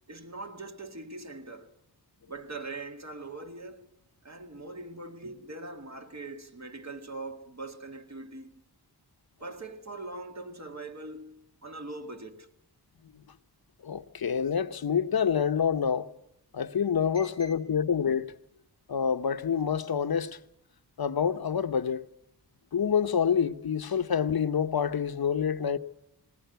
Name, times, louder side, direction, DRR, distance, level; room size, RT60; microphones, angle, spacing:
voice 1, 0.1-1.7 2.3-3.9 4.2-8.6 9.4-12.5 17.1-17.8 23.9-24.0, right 2 dB, 40° right, 2.1 m, -42 dB
voice 2, 13.8-16.1 16.5-18.3 18.9-20.4 21.0-22.1 22.7-25.8, left 7 dB, 65° left, 0.9 m, -27 dB
20.0 x 19.5 x 8.1 m
wide cardioid pair, 70°, 40 cm